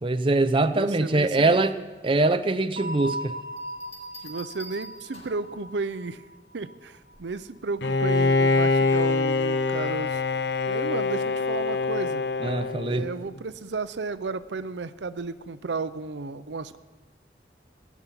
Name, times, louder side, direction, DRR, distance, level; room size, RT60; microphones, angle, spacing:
voice 1, 0.0-1.8 2.0-3.3 12.4-13.1, right 2 dB, 30° right, 10 dB, 0.6 m, -23 dB
voice 2, 0.7-1.6 4.2-6.2 6.5-10.2 10.7-12.2 12.9-16.8, right 4 dB, 85° right, 14 dB, 0.6 m, -33 dB
sound 1, 2.8-7.4, right 1 dB, 55° right, 1.5 m, -39 dB
Bell, 3.6-5.5 7.1-7.5, left 1 dB, 35° left, 4.8 m, -46 dB
Bowed string instrument, 7.8-13.4, left 3 dB, 80° left, 0.8 m, -24 dB
18.5 x 7.3 x 9.9 m, 1.3 s
head